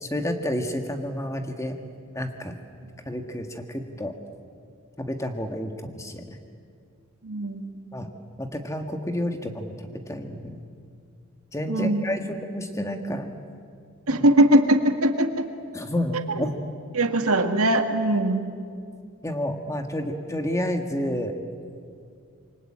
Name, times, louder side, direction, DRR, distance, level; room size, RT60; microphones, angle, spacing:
voice 1, 0.0-1.7 2.1-2.5 3.0-4.1 5.0-6.3 7.9-8.1 8.4-10.6 11.5-13.3 14.1-14.2 15.7-16.6 19.2-21.3, left 1 dB, 15° left, 5 dB, 1.7 m, -30 dB
voice 2, 7.2-7.7 11.7-12.1 14.1-15.5 16.1-16.5 16.9-18.5, right 1 dB, 80° right, 6 dB, 1.9 m, -21 dB
27.0 x 24.0 x 8.8 m, 2.3 s
head